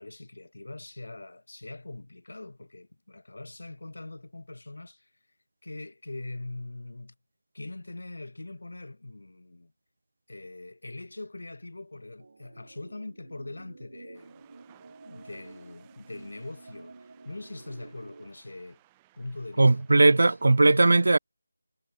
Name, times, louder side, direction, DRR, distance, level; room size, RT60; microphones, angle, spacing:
voice 1, 0.0-5.1 5.6-7.1 7.5-9.7 10.3-14.4 15.0-18.8 19.2-20.4, left 2 dB, 70° left, 7.2 m, -42 dB
sound 1, 12.2-18.3, right 3 dB, 35° right, 2.1 m, -50 dB
sound 2, 14.1-20.5, right 18 dB, 10° right, 1.6 m, -63 dB
voice 2, 19.6-21.2, right 2 dB, 50° right, 0.4 m, -19 dB
figure-of-eight pair, 180°, 0 cm